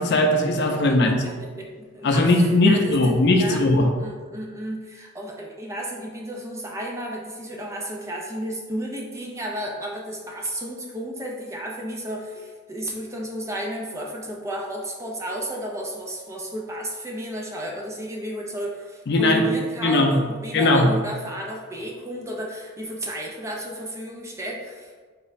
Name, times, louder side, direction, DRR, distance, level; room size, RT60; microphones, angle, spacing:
voice 1, 0.0-1.2 2.0-3.9 19.1-19.4 19.8-20.2 20.5-20.9, left 2 dB, 50° left, 3 dB, 0.4 m, -19 dB
voice 2, 0.7-3.0 3.3-3.6 4.0-25.0, right 1 dB, 15° right, -1 dB, 0.4 m, -33 dB
4.6 x 2.1 x 4.0 m, 1.5 s
head